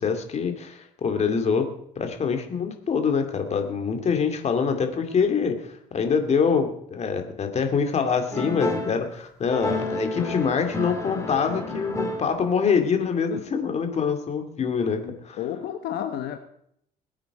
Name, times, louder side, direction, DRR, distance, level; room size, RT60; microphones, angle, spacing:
voice 1, 0.0-15.4, left 6 dB, 40° left, 6 dB, 2.4 m, -25 dB
sound 1, 8.3-9.0 9.5-12.6, left 2 dB, 20° left, 2.6 m, -30 dB
voice 2, 15.0-16.4, left 10 dB, 75° left, 7 dB, 1.0 m, -32 dB
21.0 x 9.1 x 4.9 m, 0.71 s
cardioid pair, 110°, 17 cm